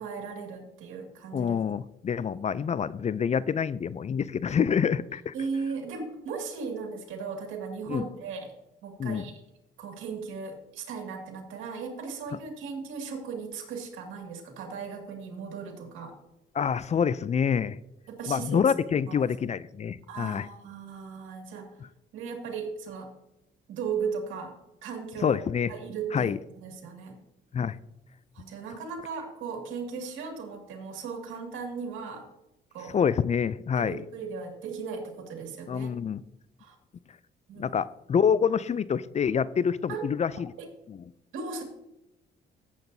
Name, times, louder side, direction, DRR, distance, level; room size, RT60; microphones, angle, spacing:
voice 1, 0.0-1.5 5.3-8.5 8.8-9.4 9.8-16.1 18.1-18.6 19.1-19.2 20.1-21.8 22.1-23.1 23.7-25.4 25.7-27.2 28.3-32.3 32.7-33.0 33.8-35.9 36.6-36.8 37.5-37.7 39.9-40.1 40.6-40.7 41.3-41.6, right 5 dB, 90° right, 2 dB, 2.1 m, -37 dB
voice 2, 1.3-5.3 7.9-8.0 9.0-9.3 16.5-17.8 18.3-20.5 25.2-25.7 26.1-26.4 27.5-27.8 32.9-34.0 35.7-36.2 37.6-40.5 40.9-41.0, left 7 dB, 35° left, 18 dB, 0.4 m, -27 dB
15.5 x 7.8 x 2.7 m, 0.90 s
cardioid pair, 90°, 20 cm